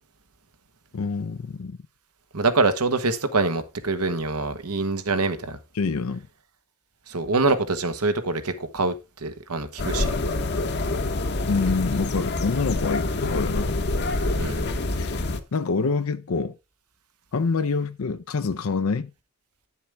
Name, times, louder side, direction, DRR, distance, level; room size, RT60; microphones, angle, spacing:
voice 1, 0.9-1.8 5.7-6.3 11.5-13.7 15.0-15.2 15.5-16.6 17.3-19.1, left 4 dB, 70° left, 0.5 m, -26 dB
voice 2, 2.3-5.6 7.1-8.9 9.2-10.1 14.4-14.7, right 3 dB, 85° right, 1.2 m, -25 dB
sound 1, 9.8-15.4, left 2 dB, 50° left, 0.9 m, -26 dB
9.9 x 7.2 x 3.4 m
head